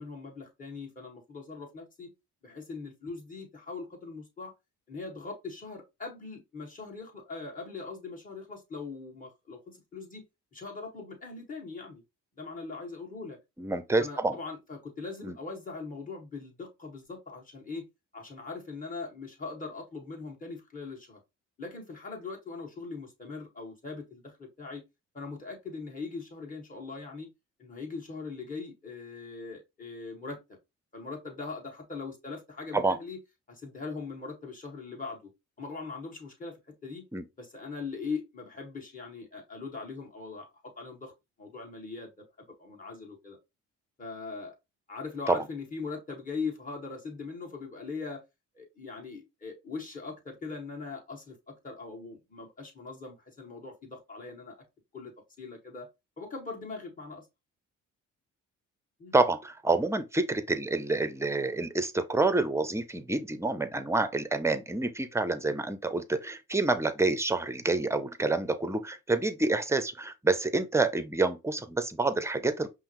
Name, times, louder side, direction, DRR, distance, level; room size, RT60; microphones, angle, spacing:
voice 1, 0.0-2.1 2.4-4.5 4.9-10.2 10.5-12.0 12.4-13.4 14.0-17.9 18.1-21.2 21.6-24.8 25.1-27.3 27.6-30.4 30.9-33.2 33.5-35.3 35.6-37.1 37.4-41.1 41.4-42.2 42.6-43.4 44.0-44.6 44.9-48.2 48.6-54.5 54.9-55.1 55.4-55.9 56.2-57.3 59.0-59.1, left 4 dB, 25° left, 1.6 m, -41 dB
voice 2, 13.6-14.4 15.2-15.4 32.7-33.0 37.1-37.2 45.3-45.4 59.1-72.7, right 3 dB, 10° right, 0.5 m, -28 dB
5.4 x 2.0 x 3.0 m
cardioid pair, 90°, 30 cm